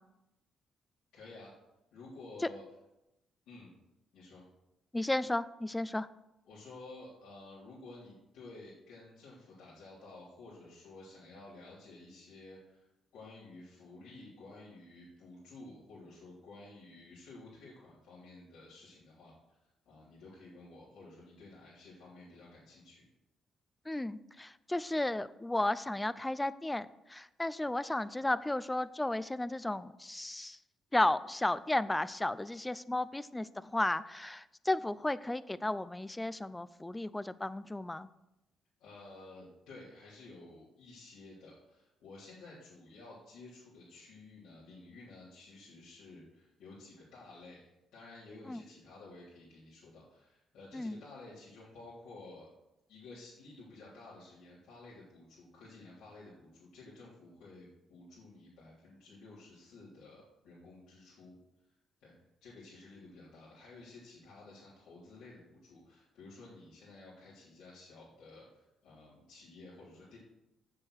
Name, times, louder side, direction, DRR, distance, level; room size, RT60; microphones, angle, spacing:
voice 1, 1.1-1.5 1.9-2.6 3.5-3.7 4.1-4.4 6.5-12.9 13.1-23.0 30.0-30.1 38.8-52.5 52.9-61.3 62.0-62.1 62.4-70.2, left 2 dB, 85° left, -10 dB, 3.6 m, -53 dB
voice 2, 4.9-6.1 23.9-30.6 30.9-38.1 48.5-48.6 50.7-51.0, left 1 dB, 10° left, 16 dB, 0.4 m, -34 dB
7.9 x 7.5 x 6.5 m, 0.91 s
cardioid pair, 90°, 0 cm